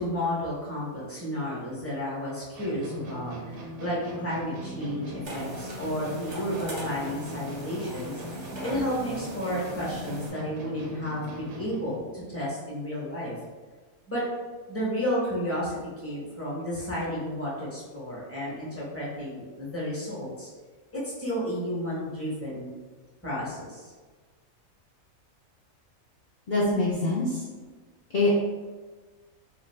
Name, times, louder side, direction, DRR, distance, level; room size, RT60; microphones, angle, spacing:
voice 1, 0.0-13.3 14.1-14.2 14.7-20.5 20.9-22.8 23.2-23.9, equal, 15° left, -7 dB, 0.5 m, -32 dB
sound 1, 2.6-12.0, right 1 dB, 85° right, 1.0 m, -40 dB
sound 2, 5.2-10.3, right 1 dB, 50° right, 0.5 m, -40 dB
voice 2, 26.5-27.4 28.1-28.3, left 2 dB, 75° left, -7 dB, 0.4 m, -24 dB
2.4 x 2.3 x 3.2 m, 1.4 s
omnidirectional pair, 1.4 m